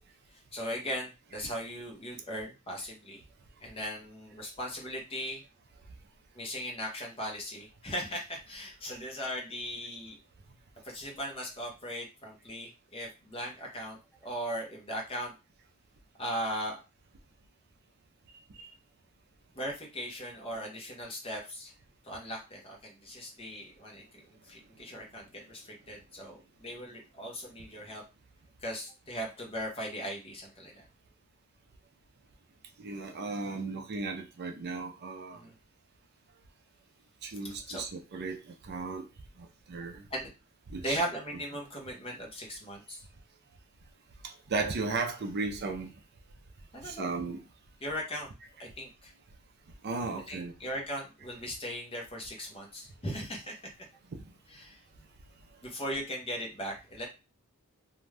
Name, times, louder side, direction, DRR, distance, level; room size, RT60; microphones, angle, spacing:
voice 1, 0.5-3.2 3.6-5.4 6.3-10.2 10.8-15.3 16.2-16.8 19.5-21.7 22.0-28.0 28.6-30.8 35.4-35.5 37.7-37.8 40.1-40.3 40.8-43.0 46.7-47.1 47.8-48.3 48.6-49.1 50.3-53.6 54.5-54.8 55.6-57.1, equal, 25° left, 0 dB, 0.8 m, -38 dB
voice 2, 32.8-35.4 37.2-39.1 39.4-40.0 40.7-41.0 44.2-45.9 46.8-47.4 49.8-50.5, right 3 dB, 50° right, 3 dB, 0.5 m, -35 dB
2.6 x 2.3 x 3.2 m, 0.29 s
head